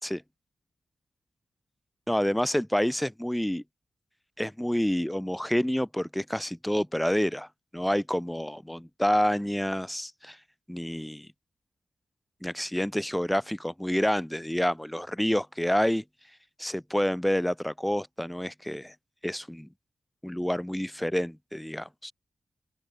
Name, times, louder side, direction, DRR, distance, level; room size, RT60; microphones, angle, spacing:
voice 1, 2.1-3.6 4.4-7.5 7.7-10.4 10.7-11.3 12.4-16.0 16.6-18.9 19.2-19.7 20.2-22.1, equal, 5° left, 4.7 m, -28 dB
open air
wide cardioid pair, 170°, 0 cm